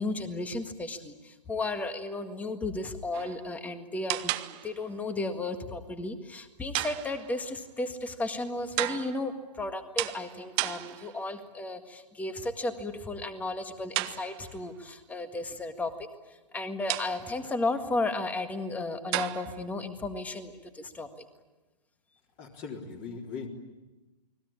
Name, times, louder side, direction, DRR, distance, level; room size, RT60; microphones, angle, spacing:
voice 1, 0.0-21.3, left 2 dB, 5° left, 8 dB, 1.8 m, -34 dB
sound 1, 3.1-3.5 4.1-4.9 6.7-7.5 8.8-9.4 10.0-11.3 13.9-14.7 16.9-17.5 19.1-19.7, right 19 dB, 25° right, 0.9 m, -34 dB
voice 2, 22.4-23.5, left 5 dB, 25° left, 1 dB, 3.7 m, -39 dB
29.5 x 21.0 x 8.7 m, 1.1 s
hypercardioid pair, 140°, 21 cm